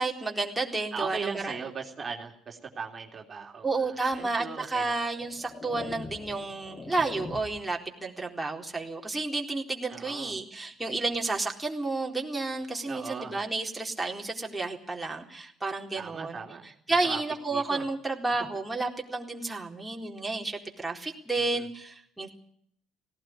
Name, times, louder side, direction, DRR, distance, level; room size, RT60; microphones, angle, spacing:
voice 1, 0.0-1.5 3.6-16.4 16.9-22.3, right 3 dB, 10° right, 0 dB, 4.0 m, -31 dB
voice 2, 0.9-4.9 9.9-10.3 12.8-13.5 15.9-17.2 17.5-17.9 21.4-21.7, right 5 dB, 35° right, 0 dB, 3.3 m, -38 dB
sound 1, 4.1-4.3 5.0-7.8, left 4 dB, 30° left, 2.0 m, -43 dB
18.0 x 17.0 x 9.6 m, 0.66 s
hypercardioid pair, 65°, 0 cm